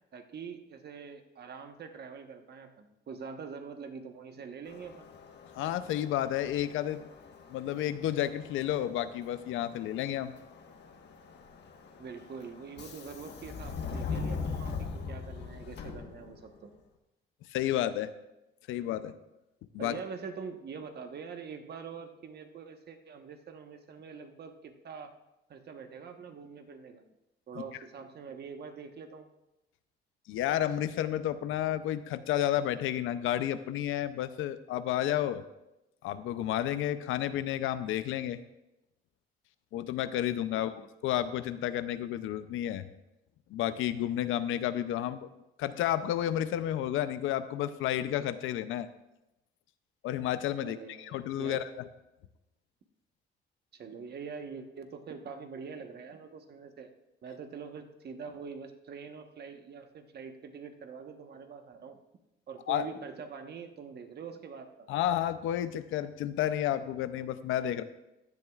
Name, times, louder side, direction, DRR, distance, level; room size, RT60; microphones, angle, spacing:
voice 1, 0.1-5.1 12.0-16.7 19.8-25.1 25.5-27.0 27.5-29.3 40.5-40.9 50.6-51.6 53.7-56.9 57.2-62.0 62.5-64.7, right 5 dB, 55° right, 6 dB, 1.3 m, -44 dB
Subway metro underground, 4.7-16.6, left 5 dB, 60° left, 1.4 m, -42 dB
voice 2, 5.5-7.0 7.5-10.3 17.5-18.1 18.7-19.1 19.7-20.0 30.3-35.4 36.0-38.4 39.7-40.7 41.0-42.9 43.5-45.3 45.6-48.9 50.0-51.8 62.7-62.8 64.9-67.8, left 12 dB, 90° left, 13 dB, 0.6 m, -31 dB
15.5 x 10.5 x 2.4 m, 0.93 s
cardioid pair, 90°, 20 cm